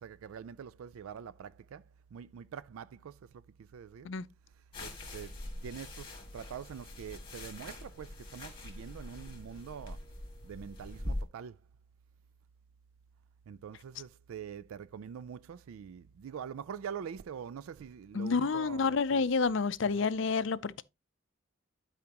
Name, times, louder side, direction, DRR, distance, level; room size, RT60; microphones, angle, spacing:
voice 1, 0.0-1.8 2.1-3.1 3.7-4.1 4.8-5.3 5.6-10.0 10.4-11.5 13.5-19.2, right 7 dB, 80° right, 0.3 m, -44 dB
sound 1, 4.7-11.2, left 1 dB, 20° left, 2.5 m, -43 dB
voice 2, 18.1-20.8, left 4 dB, 60° left, 0.5 m, -29 dB
12.0 x 5.0 x 2.9 m
head